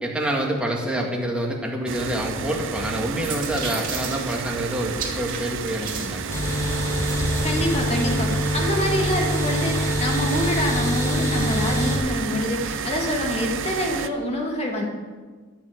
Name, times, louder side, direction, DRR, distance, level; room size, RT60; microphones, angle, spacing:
voice 1, 0.0-6.3, right 1 dB, 5° right, -1 dB, 2.0 m, -27 dB
sound 1, 1.9-14.1, right 6 dB, 65° right, 0.6 m, -31 dB
sound 2, 2.8-7.5, right 5 dB, 40° right, 2.6 m, -36 dB
sound 3, 6.3-12.0, equal, 15° left, 2.5 m, -25 dB
voice 2, 7.4-14.8, left 1 dB, 30° left, 0 dB, 2.5 m, -26 dB
13.0 x 7.3 x 8.0 m, 1.4 s
head